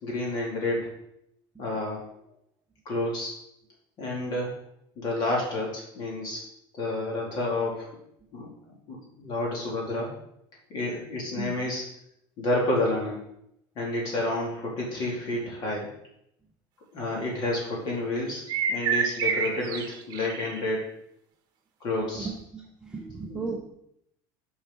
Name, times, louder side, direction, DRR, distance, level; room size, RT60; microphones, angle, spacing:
voice 1, 0.0-0.9 1.6-2.0 2.8-3.3 4.0-4.5 5.0-6.4 6.8-7.9 8.3-8.5 8.9-10.1 10.7-11.9 12.4-13.2 13.7-15.9 16.9-18.4 18.7-20.9 21.8-22.3 23.2-23.5, left 2 dB, 40° left, -2 dB, 3.1 m, -29 dB
sound 1, 18.3-20.7, right 6 dB, 40° right, 1.2 m, -28 dB
voice 2, 22.1-23.6, right 4 dB, 5° right, -2 dB, 0.9 m, -35 dB
7.8 x 5.0 x 6.2 m, 0.75 s
cardioid pair, 175°, 11 cm